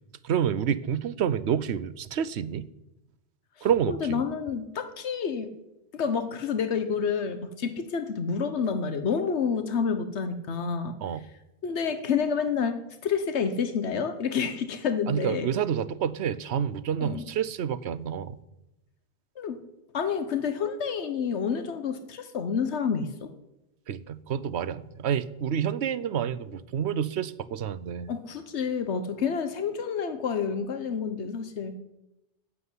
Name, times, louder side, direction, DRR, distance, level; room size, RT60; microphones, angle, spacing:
voice 1, 0.2-2.7 3.6-4.2 11.0-11.2 15.1-18.4 23.9-28.1, right 8 dB, 75° right, 16 dB, 1.0 m, -28 dB
voice 2, 3.9-5.5 5.9-11.0 11.6-15.5 17.0-17.2 19.4-19.6 19.9-23.3 28.1-31.8, left 6 dB, 90° left, 10 dB, 1.3 m, -29 dB
13.5 x 8.5 x 9.6 m, 0.93 s
omnidirectional pair, 1.1 m